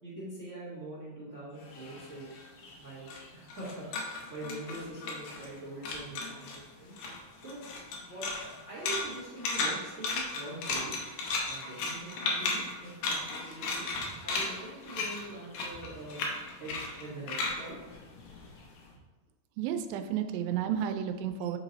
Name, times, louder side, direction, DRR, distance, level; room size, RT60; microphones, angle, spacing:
voice 1, 0.0-2.3 2.8-6.9 7.4-10.9 11.4-13.8 14.2-16.2 16.6-16.7 17.0-17.8, right 2 dB, 35° right, -9 dB, 1.2 m, -43 dB
sound 1, 1.6-5.6 5.8-6.6 6.9-18.8, left 3 dB, 85° left, 2.7 m, -35 dB
voice 2, 19.6-21.6, right 9 dB, 90° right, 7 dB, 2.3 m, -32 dB
9.0 x 3.0 x 3.9 m, 1.3 s
omnidirectional pair, 4.0 m